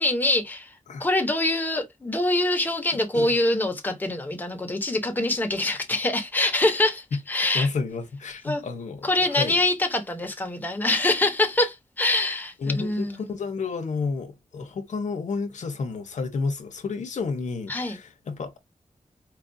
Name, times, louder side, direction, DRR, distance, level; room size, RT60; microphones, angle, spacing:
voice 1, 0.0-0.7 1.0-7.7 8.4-8.6 9.0-13.3 17.7-18.0, left 2 dB, 15° left, 0.8 m, -24 dB
voice 2, 7.5-9.6 12.6-18.6, left 4 dB, 80° left, 0.8 m, -30 dB
4.4 x 2.4 x 2.6 m
wide cardioid pair, 160°, 12 cm